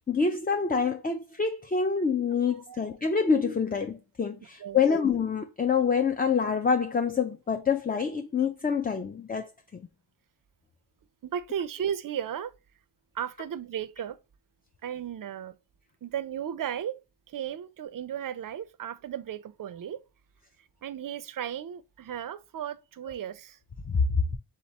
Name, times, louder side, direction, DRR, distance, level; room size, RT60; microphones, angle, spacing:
voice 1, 0.0-9.9 23.8-24.2, left 5 dB, 20° left, 0.3 m, -26 dB
voice 2, 2.5-2.8 4.6-4.8 11.2-12.5 13.1-14.2 14.8-15.6 16.0-17.0 17.3-20.0 20.6-23.6, right 9 dB, 45° right, 0.5 m, -35 dB
3.6 x 2.9 x 4.1 m
wide cardioid pair, 65°, 49 cm